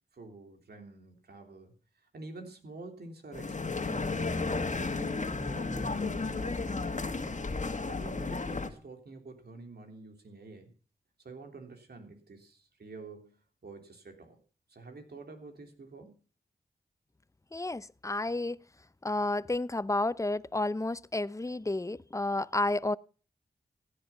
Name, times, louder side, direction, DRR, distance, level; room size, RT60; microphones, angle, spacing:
voice 1, 0.1-1.7 2.1-4.1 4.7-7.3 7.9-10.7 11.2-13.4 13.6-14.4 14.7-16.1, right 3 dB, 75° right, 3.4 m, -48 dB
sound 1, 3.3-8.7, left 3 dB, 50° left, 2.0 m, -33 dB
voice 2, 17.5-18.6 19.0-23.0, left 2 dB, 20° left, 0.6 m, -31 dB
16.0 x 9.9 x 5.7 m
cardioid pair, 40°, 17 cm